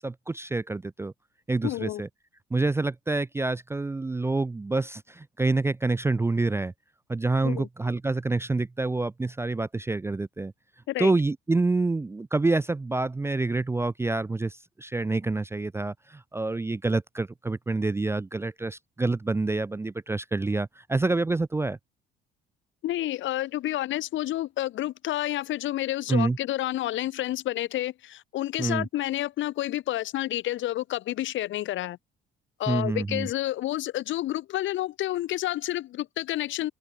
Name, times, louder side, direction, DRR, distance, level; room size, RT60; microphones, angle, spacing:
voice 1, 0.0-1.1 1.5-2.1 2.5-6.7 7.1-10.5 11.0-21.8 26.1-26.4 28.6-28.9 32.7-33.3, right 3 dB, 10° right, 0.4 m, -27 dB
voice 2, 1.6-2.0 7.4-7.7 10.9-11.1 22.8-32.0 32.6-36.7, left 14 dB, 65° left, 1.4 m, -29 dB
open air
supercardioid pair, 80°, 21 cm